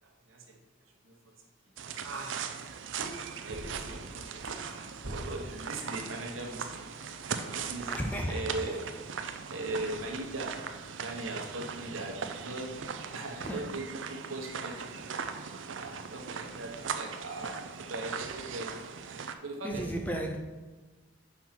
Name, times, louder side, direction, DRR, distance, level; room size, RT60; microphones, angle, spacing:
voice 1, 0.0-0.6 0.9-1.2 1.6-1.7 2.0-2.6 3.0-3.1 3.4-6.9 7.5-7.9 8.3-8.9 9.5-10.7 11.0-12.7 13.1-15.0 15.7-18.7 19.4-19.9, right 2 dB, 85° right, 1.2 m, -39 dB
sound 1, 1.8-19.3, right 6 dB, 65° right, 0.5 m, -39 dB
voice 2, 7.9-8.8 13.4-13.7 19.6-20.4, equal, 10° left, 0.5 m, -34 dB
5.4 x 4.5 x 5.9 m
head